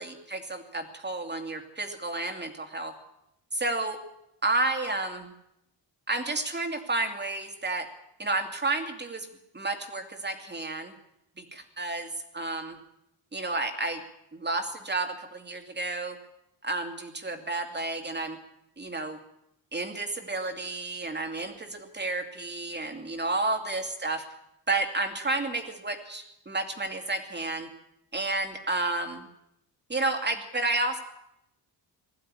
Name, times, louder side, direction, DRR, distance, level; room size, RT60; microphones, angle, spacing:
voice 1, 0.0-2.9 3.5-4.0 4.4-5.3 6.1-7.9 8.2-9.3 9.5-10.9 11.4-12.1 12.3-12.8 13.3-14.0 14.3-16.2 16.6-18.4 18.8-19.2 19.7-24.2 24.7-27.7 28.1-29.3 29.9-31.0, right 2 dB, 25° right, 5 dB, 2.8 m, -31 dB
21.0 x 15.5 x 10.0 m, 0.84 s
wide cardioid pair, 130°, 44 cm